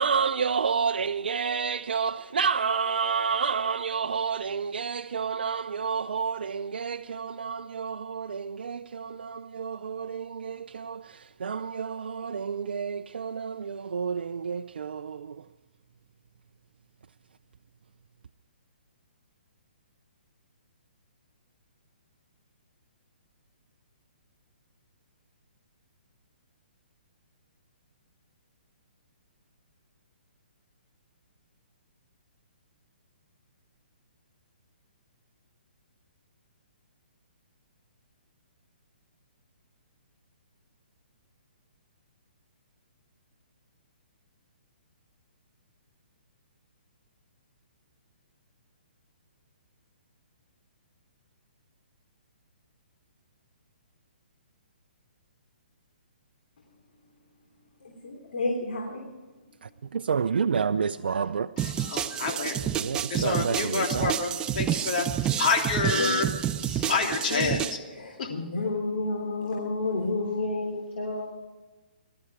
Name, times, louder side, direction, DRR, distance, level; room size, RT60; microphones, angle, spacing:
voice 1, 0.0-15.5 59.6-61.5 62.8-64.1, right 6 dB, 80° right, 0.4 m, -29 dB
voice 2, 57.8-59.0 65.9-66.2 67.3-67.4 68.0-71.3, left 2 dB, 70° left, 3.3 m, -30 dB
voice 3, 61.6-66.3 66.6-68.3, left 4 dB, 55° left, 3.2 m, -29 dB
sound 1, 61.6-67.8, right 10 dB, 15° right, 0.4 m, -29 dB
19.5 x 13.0 x 4.8 m
hypercardioid pair, 150°, 5 cm